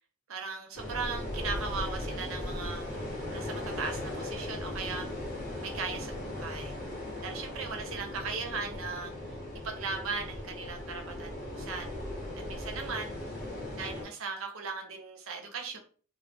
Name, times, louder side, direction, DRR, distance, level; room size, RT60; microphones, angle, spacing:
voice 1, 0.3-5.1 5.6-6.7 7.2-9.4 9.6-12.0 12.5-13.1 13.8-15.8, right 4 dB, 75° right, 0.6 m, -38 dB
sound 1, 0.7-14.0, left 1 dB, 40° left, 0.9 m, -38 dB
2.1 x 2.0 x 3.3 m
head